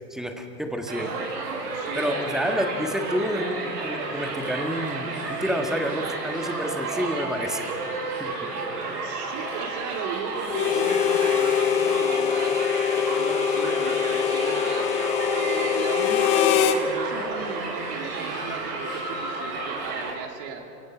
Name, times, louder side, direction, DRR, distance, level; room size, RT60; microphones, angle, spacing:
voice 1, 0.1-1.1 1.9-3.6 3.8-8.3, equal, ahead, 4 dB, 1.4 m, -29 dB
Crowd, 0.9-20.1, right 3 dB, 70° right, 6.4 m, -32 dB
voice 2, 1.6-2.4 9.0-15.1 15.3-20.8, right 5 dB, 40° right, 3 dB, 2.8 m, -37 dB
Harmonica, 10.5-16.8, left 9 dB, 15° left, 0.4 m, -23 dB
29.0 x 17.5 x 5.0 m, 2.7 s
hypercardioid pair, 115°, 49 cm